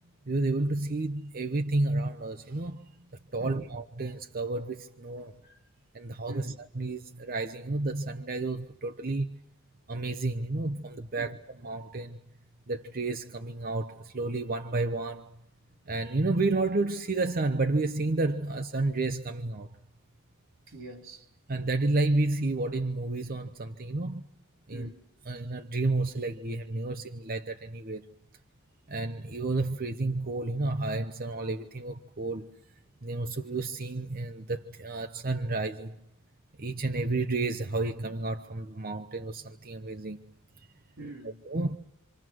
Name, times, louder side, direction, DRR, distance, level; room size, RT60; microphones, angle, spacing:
voice 1, 0.3-2.8 3.3-5.4 5.9-9.4 9.9-12.2 12.7-15.3 15.9-19.8 21.5-24.2 24.7-24.9 25.3-28.1 28.9-32.5 33.0-36.0 36.6-40.2 41.5-41.8, right 2 dB, 45° right, 0.9 m, -31 dB
voice 2, 3.4-3.7 5.2-5.6 6.3-6.6 11.2-11.4 20.7-21.3 24.7-25.0 41.0-41.4, right 2 dB, 85° right, 3.9 m, -45 dB
27.5 x 26.0 x 6.2 m
head